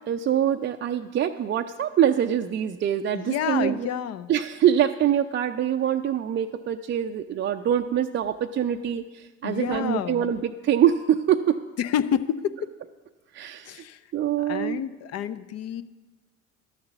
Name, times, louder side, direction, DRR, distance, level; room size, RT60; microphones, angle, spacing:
voice 1, 0.1-3.9 4.3-11.6 13.3-13.8 14.1-14.8, right 10 dB, 30° right, 5 dB, 0.5 m, -24 dB
voice 2, 3.1-4.3 9.4-10.3 11.8-12.7 13.7-14.0 14.4-15.8, left 9 dB, 45° left, 13 dB, 0.5 m, -29 dB
11.0 x 6.6 x 7.0 m, 1.2 s
hypercardioid pair, 65°, 37 cm